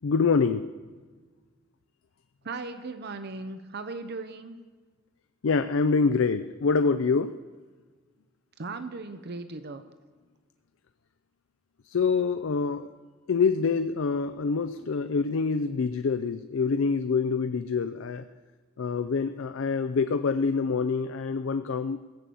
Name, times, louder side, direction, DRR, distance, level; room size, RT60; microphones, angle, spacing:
voice 1, 0.0-0.7 5.4-7.4 11.8-12.9 13.3-18.2 18.8-22.1, left 5 dB, 65° left, 10 dB, 0.4 m, -26 dB
voice 2, 2.4-4.5 8.6-9.8, right 3 dB, 55° right, 10 dB, 0.7 m, -37 dB
16.0 x 7.0 x 7.6 m, 1.4 s
head